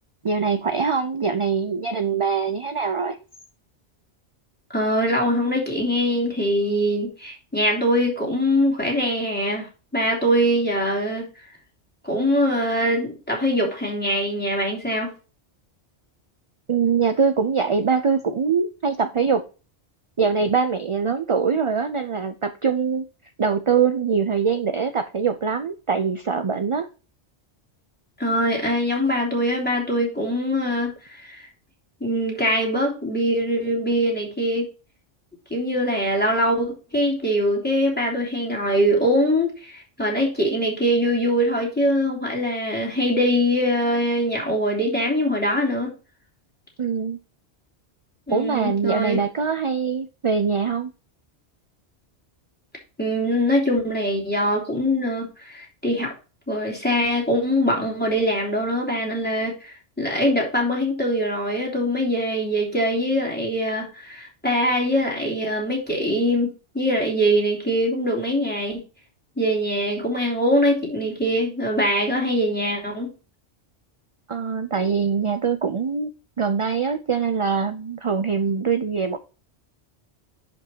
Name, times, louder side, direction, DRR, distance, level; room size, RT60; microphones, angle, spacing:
voice 1, 0.2-3.2 16.7-19.4 20.2-23.0 23.4-26.9 46.8-47.2 48.3-50.9 74.3-76.1 76.4-79.2, right 5 dB, 40° right, 0.5 m, -23 dB
voice 2, 4.7-9.7 9.9-11.3 12.0-15.1 28.2-31.5 32.0-34.7 35.5-45.9 48.3-49.2 53.0-56.1 56.5-68.8 69.4-73.1, equal, 10° left, 3.2 m, -23 dB
10.5 x 5.3 x 2.8 m
omnidirectional pair, 1.1 m